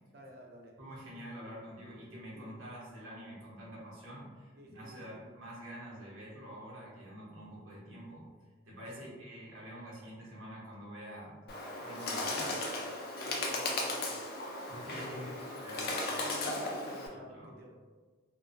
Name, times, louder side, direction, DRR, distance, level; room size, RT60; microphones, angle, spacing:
voice 1, 0.1-0.7 1.5-1.6 2.3-2.5 4.6-5.2 9.0-9.2 13.2-14.2 15.1-15.4 16.2-17.7, equal, 50° right, 0 dB, 0.4 m, -50 dB
voice 2, 0.8-8.3 8.7-11.3 11.7-12.6 14.7-16.0 17.1-17.5, equal, 85° right, -6 dB, 0.7 m, -47 dB
Bird, 11.5-17.1, left 2 dB, 50° left, 0.4 m, -36 dB
2.3 x 2.1 x 2.5 m, 1.5 s
head